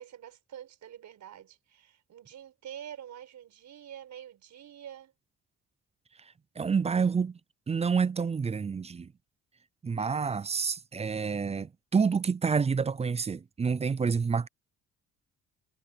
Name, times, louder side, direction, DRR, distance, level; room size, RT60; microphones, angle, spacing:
voice 1, 0.0-5.1, right 10 dB, 70° right, 5.5 m, -46 dB
voice 2, 6.6-7.4 7.7-9.1 9.8-14.5, right 5 dB, 20° right, 0.4 m, -28 dB
cardioid pair, 90°, 30 cm